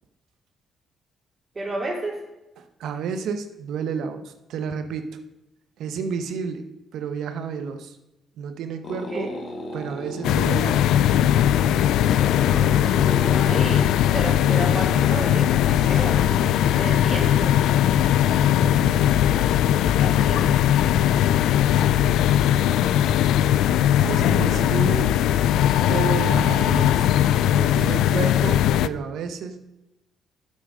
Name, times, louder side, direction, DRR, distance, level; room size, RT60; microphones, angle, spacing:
voice 1, 1.5-2.2 8.9-9.4 13.2-13.9 14.1-16.2 16.8-17.6 19.7-20.5 24.4-24.7, right 2 dB, 30° right, -2 dB, 3.5 m, -32 dB
voice 2, 2.6-5.1 5.8-6.6 6.9-8.0 8.4-9.3 9.7-10.9 15.9-16.1 16.3-16.5 18.3-19.1 21.7-22.2 24.0-25.2 25.9-27.1 27.5-29.6, right 6 dB, 80° right, 8 dB, 0.9 m, -31 dB
sound 1, 8.8-17.5, left 2 dB, 45° left, 1.9 m, -35 dB
sound 2, 10.2-28.9, left 11 dB, 85° left, 0.3 m, -19 dB
9.0 x 7.7 x 5.0 m, 0.95 s
cardioid pair, 90°, 0 cm